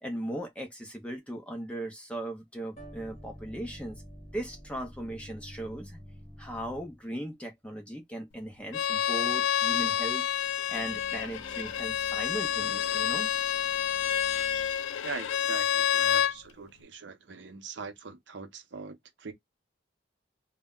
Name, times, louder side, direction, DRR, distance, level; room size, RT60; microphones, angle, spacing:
voice 1, 0.0-4.0 4.3-6.0 6.4-10.3 10.7-13.3, right 1 dB, 5° left, 0.5 m, -38 dB
sound 1, 2.8-7.2 10.8-14.9, equal, 35° left, 0.9 m, -49 dB
Bowed string instrument, 8.7-16.3, left 10 dB, 80° left, 0.3 m, -28 dB
voice 2, 15.0-19.3, right 5 dB, 70° right, 0.7 m, -42 dB
2.1 x 2.1 x 3.6 m
head